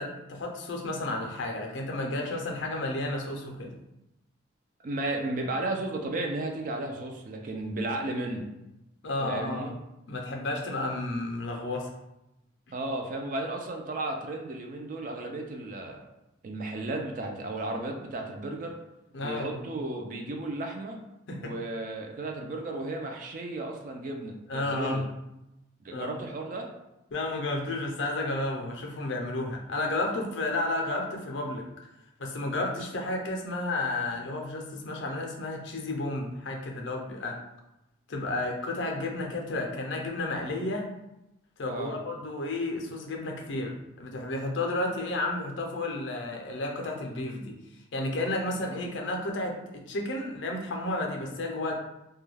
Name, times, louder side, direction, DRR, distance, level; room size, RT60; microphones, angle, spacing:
voice 1, 0.0-3.7 9.0-9.8 10.1-11.9 19.1-19.7 21.3-21.5 24.5-25.1 25.9-26.2 27.1-31.7 32.2-37.4 38.1-40.9 41.6-47.6 47.9-51.7, left 2 dB, 70° left, 1 dB, 0.5 m, -32 dB
voice 2, 4.8-8.5 9.2-9.7 12.7-16.0 16.4-18.8 19.2-21.0 21.4-25.1 25.8-26.7 41.7-42.0, right 2 dB, 45° right, 3 dB, 0.3 m, -34 dB
2.3 x 2.2 x 3.2 m, 0.90 s
head